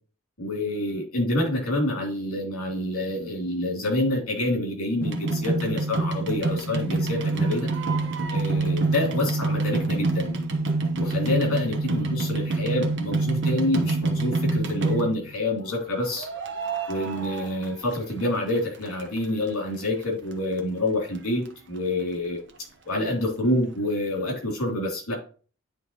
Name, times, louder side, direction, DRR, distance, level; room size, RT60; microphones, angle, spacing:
voice 1, 0.4-7.7 8.3-10.3 11.0-16.3 16.9-22.4 22.8-25.2, left 1 dB, 80° left, -1 dB, 3.0 m, -27 dB
sound 1, 5.0-15.3 16.2-18.3 18.5-19.5 20.0-20.1 20.3-20.4 20.6-20.7 21.1-21.2 21.5-21.6, right 3 dB, 55° right, 0.9 m, -26 dB
10.0 x 3.4 x 3.1 m, 0.40 s
head